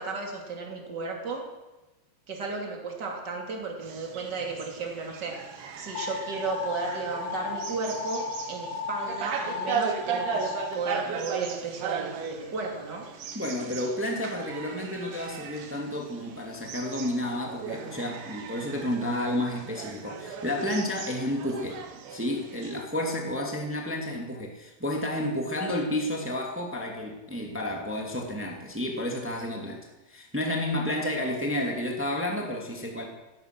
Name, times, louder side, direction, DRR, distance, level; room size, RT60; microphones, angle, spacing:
voice 1, 0.0-1.4 2.3-13.1, right 4 dB, 30° right, 1 dB, 2.6 m, -34 dB
sound 1, 3.8-22.8, right 6 dB, 85° right, 3.7 m, -37 dB
sound 2, 6.0-10.7, left 5 dB, 90° left, 3.3 m, -35 dB
voice 2, 13.3-21.8 22.1-33.0, left 1 dB, 15° right, 1 dB, 0.5 m, -31 dB
17.0 x 12.5 x 6.1 m, 1.1 s
omnidirectional pair, 5.1 m